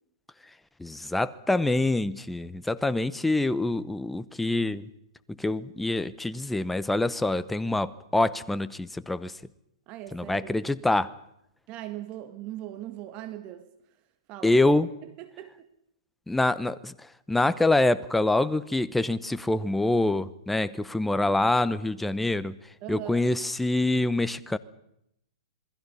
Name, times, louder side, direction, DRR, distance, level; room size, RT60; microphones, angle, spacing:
voice 1, 0.8-4.8 5.4-9.3 10.1-11.1 14.4-14.9 16.3-16.9 17.3-22.6 22.9-24.6, left 2 dB, 5° left, 0.8 m, -25 dB
voice 2, 9.9-10.6 11.7-13.7 14.3-15.7 22.8-23.3, right 13 dB, 35° right, 1.8 m, -40 dB
27.5 x 21.5 x 5.6 m
hypercardioid pair, 140°, 3 cm